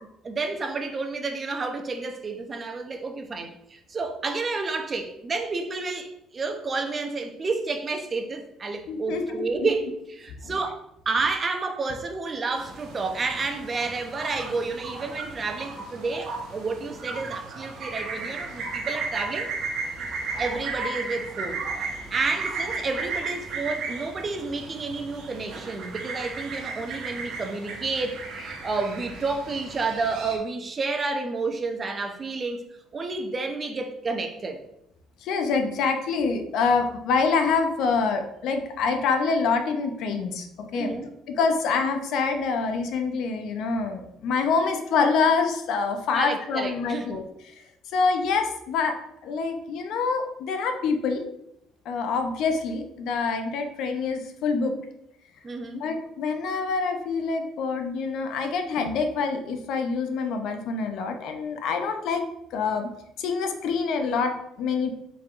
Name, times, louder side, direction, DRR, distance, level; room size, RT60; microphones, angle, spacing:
voice 1, 0.2-19.5 20.4-32.6 32.9-34.6 40.7-41.1 46.1-47.1 55.4-55.9, right 3 dB, 35° right, 5 dB, 0.6 m, -30 dB
voice 2, 8.9-9.7 10.4-10.5 35.2-40.5 40.7-40.9 41.4-47.2 47.9-48.9 49.2-51.2 51.9-54.7 55.7-62.2 62.5-62.9 63.2-64.9, left 4 dB, 70° left, 6 dB, 0.6 m, -26 dB
sound 1, 12.5-30.4, right 4 dB, 65° right, 1.0 m, -35 dB
4.4 x 4.0 x 2.5 m, 0.81 s
supercardioid pair, 75°, 0 cm